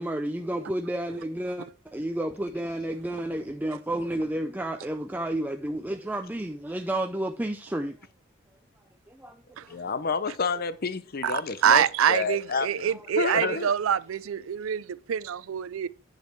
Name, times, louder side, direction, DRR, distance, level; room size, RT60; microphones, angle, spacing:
voice 1, 0.0-8.0 9.2-9.3 9.7-9.9, right 1 dB, 10° right, 0.5 m, -31 dB
voice 2, 9.7-13.7, left 4 dB, 45° left, 0.6 m, -30 dB
voice 3, 11.2-15.9, right 8 dB, 70° right, 0.4 m, -25 dB
9.1 x 5.3 x 4.5 m
head